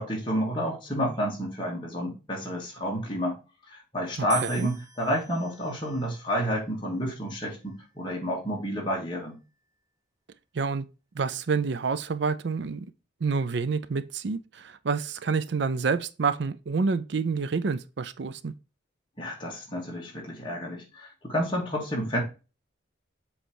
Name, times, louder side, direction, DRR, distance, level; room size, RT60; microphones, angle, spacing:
voice 1, 0.0-3.4 3.7-9.4 19.2-22.2, equal, 25° left, 2.2 m, -30 dB
voice 2, 4.2-4.7 10.5-10.9 11.1-12.9 13.2-18.5, right 5 dB, 60° right, 0.5 m, -28 dB
sound 1, 4.3-6.5 7.3-7.8, right 4 dB, 15° right, 1.0 m, -41 dB
7.7 x 3.3 x 4.7 m
head